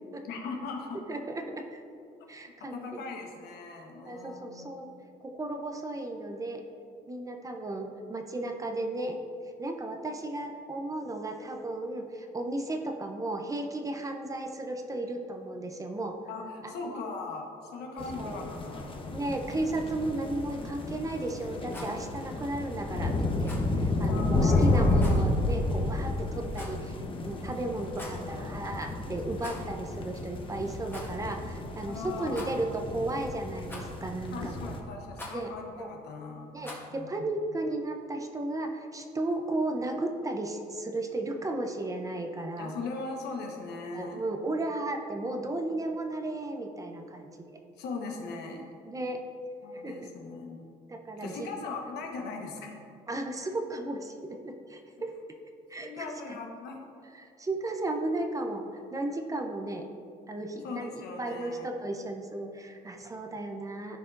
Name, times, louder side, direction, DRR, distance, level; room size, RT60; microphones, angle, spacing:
voice 1, 0.2-1.0 2.5-4.7 16.3-18.9 24.0-25.0 31.8-32.5 34.3-36.5 36.9-37.3 42.6-44.2 47.8-48.6 49.6-50.6 51.2-52.8 55.8-56.8 60.6-61.7, left 4 dB, 75° left, 1 dB, 1.2 m, -39 dB
voice 2, 1.1-1.8 2.3-3.2 4.1-4.9 5.2-6.6 7.1-9.2 9.6-16.2 16.6-17.0 18.0-18.5 19.1-27.0 27.2-34.8 35.3-35.9 36.5-42.7 43.9-47.6 48.9-49.2 49.7-50.1 50.9-51.3 53.1-55.1 55.7-56.4 57.1-58.6 58.9-59.9 60.3-64.0, right 2 dB, 20° right, 4 dB, 0.6 m, -34 dB
sound 1, 18.0-34.8, left 2 dB, 30° left, 0.8 m, -31 dB
Rattle, 21.7-22.0 23.4-23.7 25.0-25.2 26.5-26.9 27.8-28.3 29.3-29.8 30.0-30.1 30.9-31.1 32.3-32.8 33.7-34.1 35.1-35.4 36.6-36.9, left 1 dB, 10° left, 1.4 m, -43 dB
13.0 x 4.8 x 2.5 m, 2.4 s
cardioid pair, 110°, 17 cm